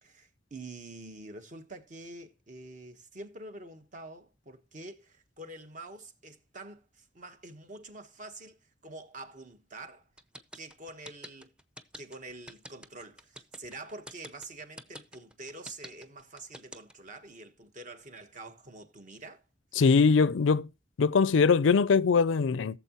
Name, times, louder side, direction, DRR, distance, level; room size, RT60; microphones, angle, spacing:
voice 1, 0.0-8.6 8.8-10.1 10.5-11.5 12.0-19.4, right 2 dB, 40° right, 1.3 m, -46 dB
sound 1, 10.2-17.1, equal, 5° right, 0.7 m, -46 dB
voice 2, 19.8-20.7 21.0-22.8, left 5 dB, 85° left, 0.5 m, -22 dB
16.0 x 7.3 x 3.0 m
head